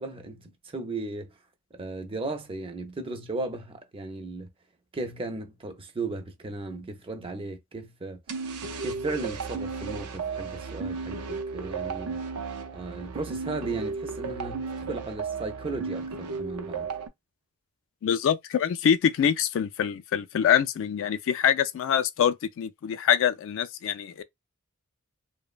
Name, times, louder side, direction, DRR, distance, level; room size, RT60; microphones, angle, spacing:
voice 1, 0.0-1.3 1.7-4.5 4.9-8.2 8.8-12.2 12.7-16.9, right 3 dB, 25° right, 0.5 m, -35 dB
sound 1, 8.3-17.1, right 5 dB, 75° right, 0.5 m, -34 dB
voice 2, 18.0-24.2, left 8 dB, 60° left, 0.3 m, -25 dB
2.9 x 2.1 x 2.4 m
head